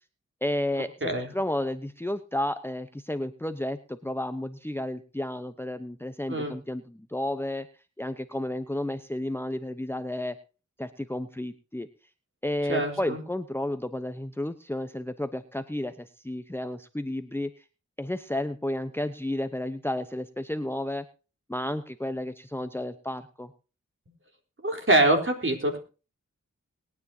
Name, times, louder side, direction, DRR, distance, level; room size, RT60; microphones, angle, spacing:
voice 1, 0.4-7.7 8.0-10.4 10.8-11.9 12.4-17.6 18.0-21.1 21.5-23.5, left 1 dB, 5° left, 11 dB, 0.9 m, -32 dB
voice 2, 1.0-1.3 6.3-6.5 12.7-13.2 24.6-25.8, right 2 dB, 40° right, 2 dB, 3.9 m, -24 dB
21.0 x 9.7 x 2.8 m, 0.33 s
cardioid pair, 40°, 31 cm